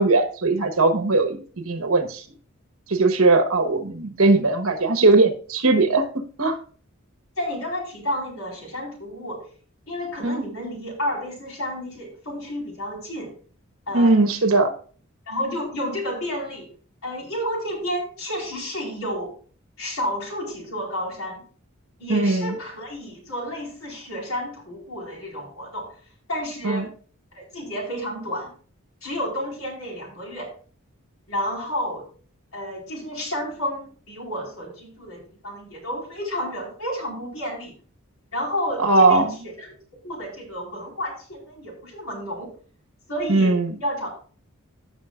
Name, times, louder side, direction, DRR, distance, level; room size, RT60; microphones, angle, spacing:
voice 1, 0.0-2.2 2.9-6.1 6.4-6.6 10.2-10.4 13.9-14.7 22.1-22.5 26.6-26.9 38.8-39.3 43.3-43.7, right 3 dB, 70° right, 7 dB, 1.3 m, -19 dB
voice 2, 7.4-9.4 9.9-13.3 13.9-14.2 15.3-16.7 17.0-19.3 19.8-21.4 22.0-25.9 26.3-26.9 27.3-28.5 29.0-30.5 31.3-32.0 32.5-37.7 38.3-39.7 40.0-42.5 43.1-43.5 43.8-44.1, equal, 70° left, -3 dB, 4.7 m, -31 dB
16.0 x 6.1 x 2.5 m, 0.42 s
head